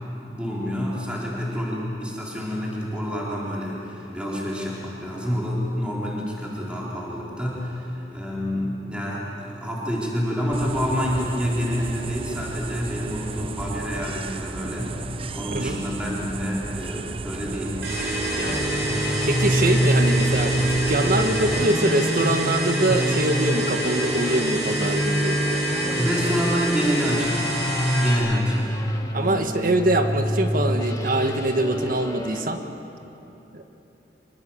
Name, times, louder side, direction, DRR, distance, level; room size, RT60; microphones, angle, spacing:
voice 1, 0.2-15.0 15.3-17.8 25.9-27.5 28.0-28.7, equal, 5° right, -5 dB, 4.1 m, -28 dB
sound 1, 10.5-21.6, right 3 dB, 30° right, 0.5 m, -34 dB
voice 2, 15.5-15.8 18.4-18.8 19.3-25.6 29.1-32.6 33.5-33.7, right 1 dB, 55° right, 6 dB, 1.6 m, -24 dB
sound 2, 17.8-28.1, right 1 dB, 90° right, 6.4 m, -27 dB
sound 3, 18.5-32.4, equal, 20° left, 1.5 m, -27 dB
25.5 x 23.5 x 7.3 m, 3.0 s
head